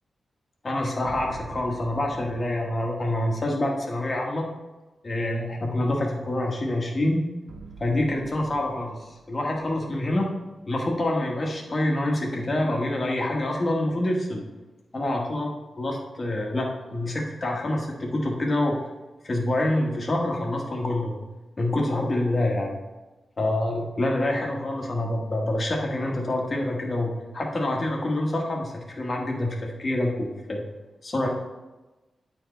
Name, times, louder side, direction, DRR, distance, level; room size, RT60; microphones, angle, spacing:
voice 1, 0.6-4.5 5.0-7.2 7.8-10.3 10.7-14.4 14.9-15.5 15.8-18.8 19.2-21.2 21.6-22.8 23.4-30.6 31.0-31.3, left 1 dB, 35° left, 0 dB, 1.5 m, -26 dB
sound 1, 1.0-3.2 7.5-10.7, right 3 dB, 90° right, 0.8 m, -47 dB
9.0 x 4.6 x 3.3 m, 1.1 s
wide cardioid pair, 100°, 0 cm